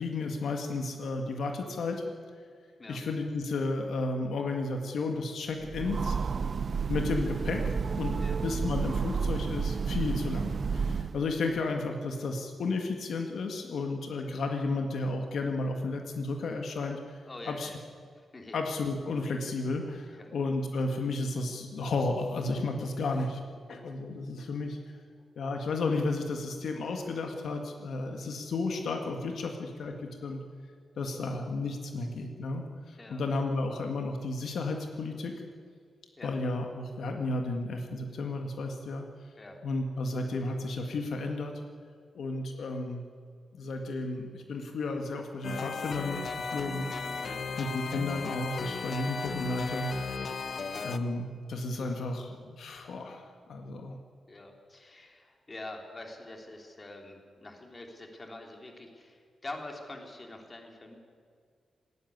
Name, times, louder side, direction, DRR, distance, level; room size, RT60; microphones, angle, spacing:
voice 1, 0.0-2.0 2.9-6.2 6.9-17.2 17.5-17.7 18.5-23.4 23.7-24.8 25.4-30.4 31.0-35.3 36.2-39.1 39.6-41.6 42.2-43.1 43.5-47.2 47.6-49.9 50.8-54.0, left 3 dB, 70° left, 4 dB, 1.8 m, -33 dB
Train, 5.6-11.4, right 5 dB, 40° right, 0.8 m, -31 dB
voice 2, 17.3-17.8 18.2-18.6 20.1-20.3 32.7-33.2 36.2-36.3 39.4-39.6 47.2-47.5 54.3-60.9, left 2 dB, 25° left, 2 dB, 3.1 m, -45 dB
sound 1, 45.4-51.0, left 5 dB, 50° left, 1.2 m, -36 dB
19.0 x 15.5 x 9.4 m, 2.1 s
wide cardioid pair, 140°, 0 cm